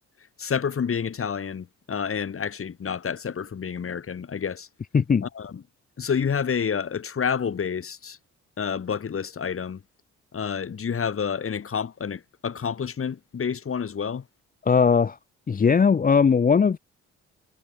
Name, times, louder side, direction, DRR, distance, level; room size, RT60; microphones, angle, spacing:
voice 1, 0.4-4.7 5.2-5.6 6.0-8.2 8.6-9.8 10.3-14.3, left 7 dB, 45° left, 6.8 m, -29 dB
voice 2, 4.9-5.3 14.7-15.2 15.5-16.8, left 6 dB, 30° left, 0.8 m, -19 dB
cardioid pair, 90°, 30 cm